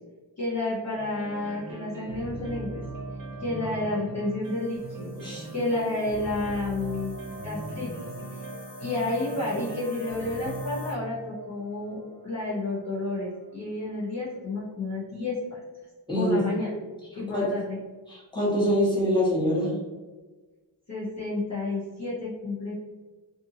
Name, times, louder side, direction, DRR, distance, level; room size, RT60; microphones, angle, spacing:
voice 1, 0.4-2.8 3.4-5.1 5.5-8.4 8.8-15.6 16.1-16.7 17.2-17.8 20.9-22.7, left 2 dB, 40° left, -8 dB, 0.9 m, -31 dB
sound 1, 1.0-13.9, right 3 dB, 50° right, 0.7 m, -40 dB
sound 2, 4.5-10.9, left 3 dB, 75° left, 0.8 m, -45 dB
voice 2, 5.2-5.5 16.1-16.4 17.3-17.6 18.1-19.8, equal, 10° left, -6 dB, 1.1 m, -25 dB
2.6 x 2.6 x 2.6 m, 1.3 s
wide cardioid pair, 85°, 43 cm